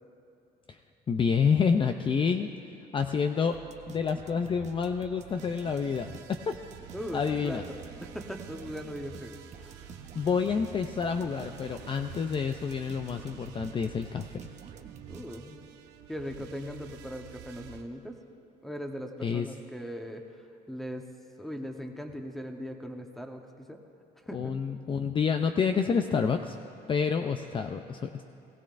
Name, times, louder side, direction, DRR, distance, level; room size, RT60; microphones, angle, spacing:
voice 1, 1.1-2.5 2.9-3.6 3.9-6.6 7.1-7.6 10.1-14.4 19.2-19.5 24.3-26.5 26.9-28.2, left 6 dB, 30° left, 6 dB, 0.4 m, -28 dB
sound 1, 3.5-15.8, right 8 dB, 45° right, 0.7 m, -48 dB
sound 2, 5.2-17.8, right 9 dB, 90° right, 0.8 m, -50 dB
voice 2, 6.9-9.8 15.1-15.6 16.1-18.2 18.6-20.3 20.7-21.1 21.4-23.8 24.2-24.6, equal, ahead, 4 dB, 1.0 m, -39 dB
20.0 x 15.5 x 2.5 m, 2.7 s
cardioid pair, 110°, 17 cm